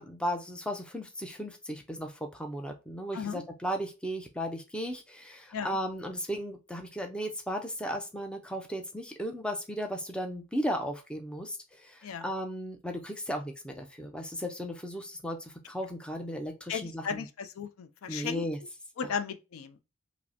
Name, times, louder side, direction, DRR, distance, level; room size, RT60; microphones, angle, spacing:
voice 1, 0.0-17.2 18.1-18.6, equal, 5° left, 0.4 m, -35 dB
voice 2, 16.7-18.5 19.0-19.8, left 6 dB, 80° left, 0.4 m, -36 dB
4.9 x 2.0 x 2.8 m
head